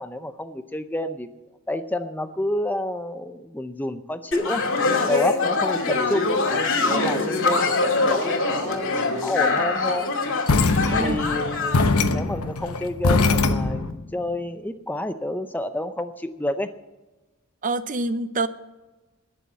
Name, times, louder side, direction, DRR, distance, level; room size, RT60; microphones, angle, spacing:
voice 1, 0.0-1.3 1.7-4.6 5.0-6.4 6.8-10.1 11.0-16.7, left 1 dB, 10° left, 10 dB, 0.6 m, -29 dB
sound 1, 4.3-11.8, left 3 dB, 60° left, 2.5 m, -23 dB
voice 2, 6.9-7.3 10.9-11.2 17.6-18.5, right 2 dB, 35° right, 12 dB, 0.7 m, -27 dB
sound 2, 10.5-14.0, left 3 dB, 85° left, 1.0 m, -22 dB
20.5 x 7.1 x 7.4 m, 1.1 s
head